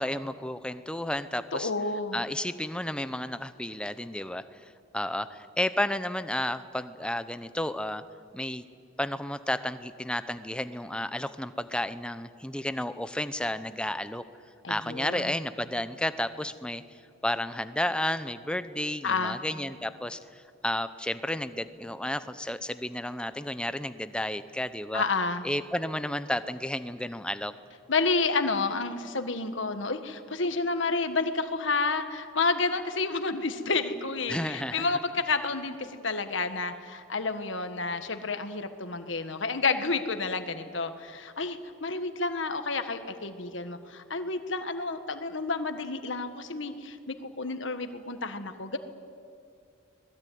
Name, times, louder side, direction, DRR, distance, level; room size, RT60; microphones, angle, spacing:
voice 1, 0.0-1.7 2.1-8.0 8.3-8.6 9.0-14.2 14.7-25.0 25.4-27.5 34.3-34.8, left 1 dB, 5° left, 12 dB, 0.7 m, -32 dB
voice 2, 1.5-2.2 14.6-15.3 19.0-19.4 24.9-25.4 27.9-48.8, left 3 dB, 65° left, 8 dB, 1.6 m, -30 dB
25.5 x 20.5 x 9.4 m, 2.3 s
head